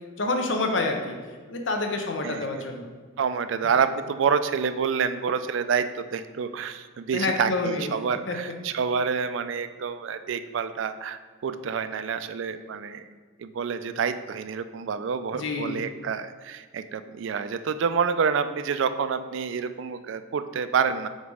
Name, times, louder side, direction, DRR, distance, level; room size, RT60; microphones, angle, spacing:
voice 1, 0.2-1.2 1.5-2.9 7.1-7.9 8.3-8.4 15.3-15.8, left 2 dB, 65° left, 3 dB, 0.8 m, -27 dB
voice 2, 3.2-5.9 6.1-13.1 13.4-21.1, right 6 dB, 70° right, 11 dB, 0.4 m, -28 dB
5.2 x 4.0 x 4.8 m, 1.5 s
head